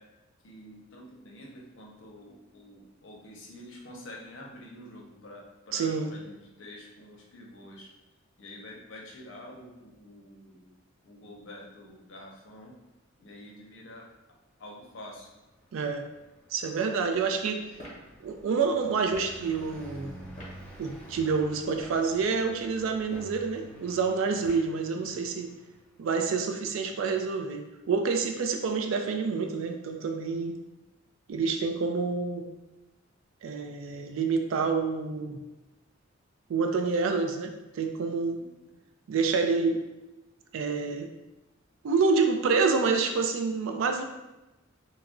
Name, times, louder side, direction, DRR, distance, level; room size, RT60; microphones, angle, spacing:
voice 1, 0.4-7.9 8.4-10.7 11.0-12.7 13.2-14.1 14.6-15.3, left 1 dB, 65° left, -1 dB, 0.6 m, -47 dB
voice 2, 5.7-6.1 15.7-16.0 16.5-17.6 18.2-20.1 20.8-25.5 26.0-30.6 31.3-32.5 33.4-35.4 36.5-38.4 39.1-39.8 40.5-41.1 41.8-44.0, right 4 dB, 75° right, 5 dB, 0.3 m, -28 dB
Car passing by, 15.2-26.1, right 1 dB, 5° left, 0.5 m, -50 dB
sound 1, 17.8-18.0 19.1-19.4 20.4-20.6 21.6-22.0 23.0-23.4 24.4-24.8, equal, 35° left, 0.8 m, -44 dB
2.3 x 2.0 x 3.6 m, 1.0 s
head